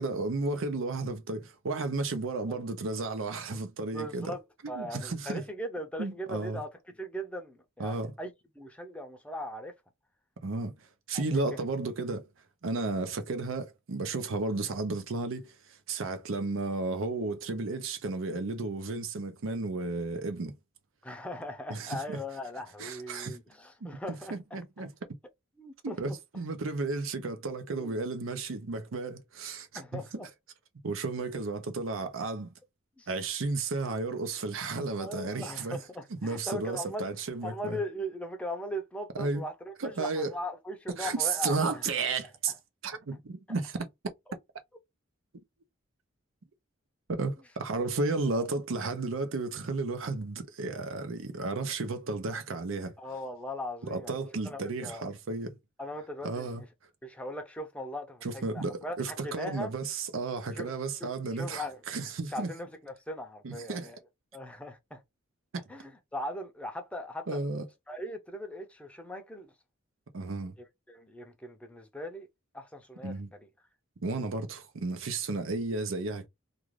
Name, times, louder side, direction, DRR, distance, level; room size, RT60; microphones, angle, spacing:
voice 1, 0.0-4.3 4.7-5.4 6.0-6.6 7.8-8.1 10.4-10.7 11.1-12.3 12.6-15.6 15.9-20.5 21.7-22.2 22.8-23.4 24.3-24.9 25.8-30.0 30.8-32.5 33.1-35.8 36.1-37.8 39.2-39.4 39.8-40.3 40.9-42.5 42.8-43.9 47.1-52.9 53.9-55.6 56.2-56.6 58.2-62.5 63.4-63.9 65.5-65.6 67.3-67.6 70.1-70.6 73.0-73.3 74.0-76.3, right 3 dB, 75° right, 0.6 m, -33 dB
voice 2, 3.9-4.4 4.7-9.7 11.1-11.6 21.0-24.6 25.6-26.2 27.8-28.0 29.7-30.3 33.0-33.1 35.0-37.1 37.4-41.8 47.9-48.5 53.0-55.0 55.8-56.7 57.0-59.7 60.5-60.7 61.0-61.8 62.3-64.0 64.3-65.0 65.7-67.4 67.9-69.5 70.6-72.3 72.5-73.1, left 1 dB, 5° left, 0.5 m, -39 dB
2.4 x 2.4 x 3.1 m
head